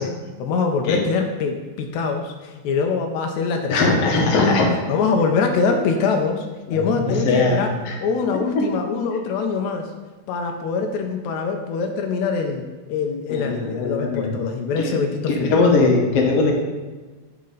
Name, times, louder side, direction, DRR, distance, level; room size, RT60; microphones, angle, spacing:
voice 1, 0.0-4.6 4.9-9.9 10.3-15.7, left 5 dB, 85° left, 4 dB, 1.6 m, -24 dB
voice 2, 3.7-4.8 6.7-6.8 7.1-7.9 8.3-8.9 13.3-14.4 14.8-15.0 15.4-16.5, left 3 dB, 70° left, 1 dB, 1.5 m, -20 dB
9.7 x 4.2 x 3.8 m, 1.3 s
omnidirectional pair, 4.0 m